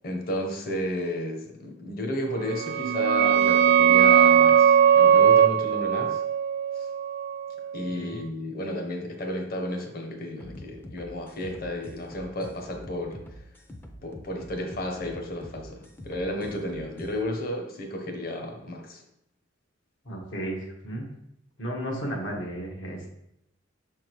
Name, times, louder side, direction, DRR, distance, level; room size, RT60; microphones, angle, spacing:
voice 1, 0.0-6.2 6.7-6.9 7.7-13.2 14.0-19.0, left 1 dB, 50° left, 3 dB, 1.1 m, -33 dB
sound 1, 2.5-7.9, right 8 dB, 55° right, 0.3 m, -19 dB
voice 2, 7.9-8.2 20.1-21.0 21.6-23.1, right 1 dB, 80° left, -1 dB, 1.6 m, -34 dB
sound 2, 10.4-17.1, left 1 dB, 10° left, 0.5 m, -45 dB
6.2 x 3.7 x 4.6 m, 0.80 s
head